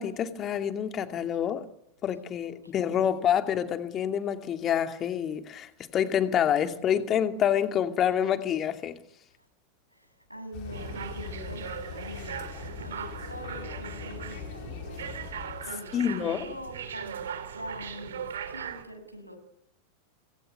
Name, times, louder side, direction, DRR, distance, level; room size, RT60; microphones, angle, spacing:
voice 1, 0.0-1.7 2.0-9.0 15.9-16.4, left 9 dB, 30° left, 2.5 m, -27 dB
voice 2, 2.4-2.7 3.0-3.2 9.9-19.4, equal, 90° right, 8.0 m, -44 dB
sound 1, 10.5-15.7, left 10 dB, 45° left, 5.3 m, -42 dB
sound 2, 10.7-18.8, right 8 dB, 65° right, 3.8 m, -39 dB
26.5 x 23.0 x 9.7 m
figure-of-eight pair, 90°, 0 cm